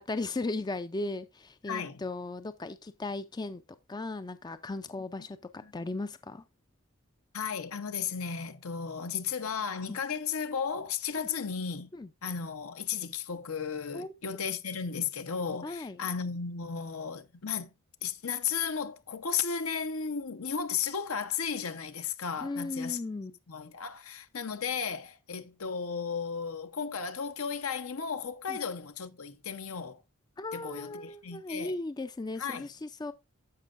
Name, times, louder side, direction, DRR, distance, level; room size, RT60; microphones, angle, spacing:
voice 1, 0.0-3.6 3.9-6.4 9.9-10.0 11.9-12.1 13.9-14.1 14.9-15.0 15.6-16.0 22.4-23.4 28.5-28.6 30.4-33.1, left 2 dB, 20° left, 0.4 m, -37 dB
voice 2, 1.7-2.0 5.6-5.7 7.3-11.9 12.2-17.7 18.0-23.0 23.5-30.0 30.5-31.7 32.4-32.7, left 6 dB, 75° left, 0.9 m, -34 dB
14.0 x 5.4 x 2.5 m
head